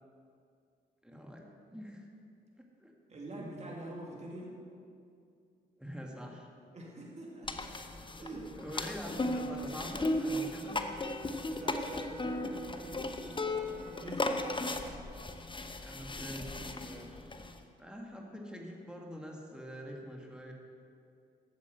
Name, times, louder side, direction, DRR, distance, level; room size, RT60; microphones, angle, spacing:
voice 1, 1.0-2.1 2.6-2.9 3.4-3.5 5.8-6.5 8.3-10.8 11.3-11.4 15.8-17.4 17.8-20.5, equal, 5° right, 0 dB, 1.8 m, -45 dB
voice 2, 3.1-4.6 6.7-7.8 8.2-8.6 11.5-14.9, right 1 dB, 35° right, -2 dB, 2.3 m, -46 dB
sound 1, 7.5-17.6, left 2 dB, 25° left, 0.9 m, -36 dB
Wind instrument woodwind instrument, 9.2-14.9, right 2 dB, 80° right, 2.2 m, -53 dB
8.8 x 7.0 x 7.9 m, 2.4 s
supercardioid pair, 50°, 20 cm